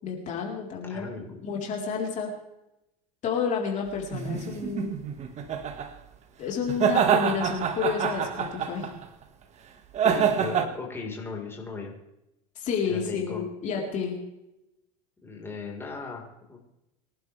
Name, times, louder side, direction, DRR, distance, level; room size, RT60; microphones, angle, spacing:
voice 1, 0.0-1.2 1.4-2.3 3.2-5.0 6.4-8.9 12.6-14.2, left 6 dB, 40° left, -1 dB, 4.0 m, -30 dB
voice 2, 0.9-1.4 4.5-4.7 10.0-11.9 12.9-13.4 15.2-16.6, left 4 dB, 15° left, -1 dB, 4.5 m, -37 dB
sound 1, 4.1-5.9 6.7-9.0 9.9-10.7, right 8 dB, 40° right, 1.9 m, -26 dB
25.0 x 11.5 x 3.4 m, 0.89 s
supercardioid pair, 115°, 18 cm